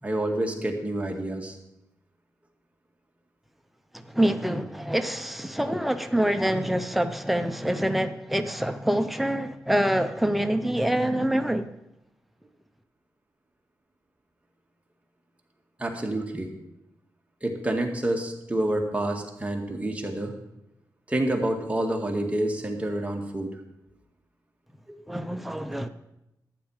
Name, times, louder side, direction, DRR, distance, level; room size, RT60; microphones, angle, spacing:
voice 1, 0.0-1.6 15.8-16.5 17.4-20.3 21.1-23.6 24.9-25.0, right 1 dB, 20° right, 1 dB, 2.0 m, -28 dB
voice 2, 3.9-11.7 25.1-25.9, right 1 dB, ahead, 8 dB, 0.8 m, -26 dB
12.0 x 9.3 x 5.0 m, 0.89 s
cardioid pair, 75°, 7 cm